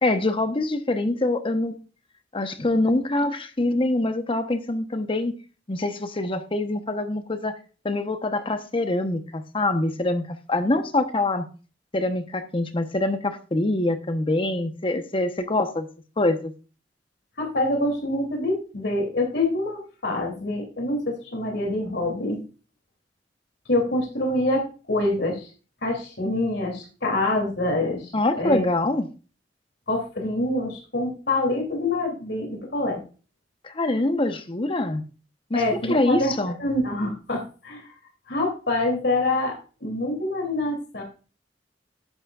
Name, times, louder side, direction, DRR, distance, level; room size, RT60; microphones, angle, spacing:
voice 1, 0.0-1.8 2.3-5.3 5.7-7.6 7.8-11.5 11.9-15.9 16.2-16.5 28.1-29.1 33.6-35.0 35.5-35.6 35.9-36.5, left 2 dB, 30° left, 0.9 m, -24 dB
voice 2, 17.4-22.4 23.7-25.5 25.8-28.6 29.9-33.0 35.5-36.3 36.6-37.9 38.3-41.0, left 2 dB, 65° left, 2.8 m, -26 dB
11.5 x 8.5 x 2.4 m
head